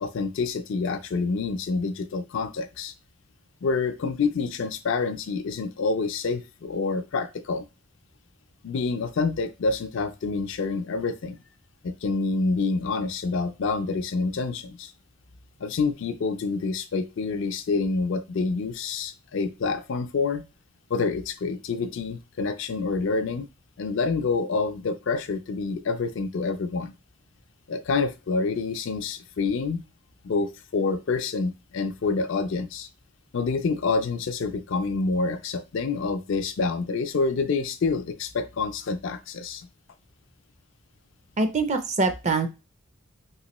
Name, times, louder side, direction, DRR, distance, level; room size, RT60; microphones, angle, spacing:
voice 1, 0.0-2.9 3.6-7.6 8.6-11.4 11.8-14.9 15.6-20.4 20.9-23.5 23.8-26.9 27.7-29.8 30.2-32.9 33.3-39.7, left 4 dB, 65° left, 9 dB, 0.4 m, -27 dB
voice 2, 41.4-42.5, right 3 dB, 35° right, 8 dB, 0.4 m, -24 dB
3.0 x 2.8 x 3.0 m, 0.29 s
head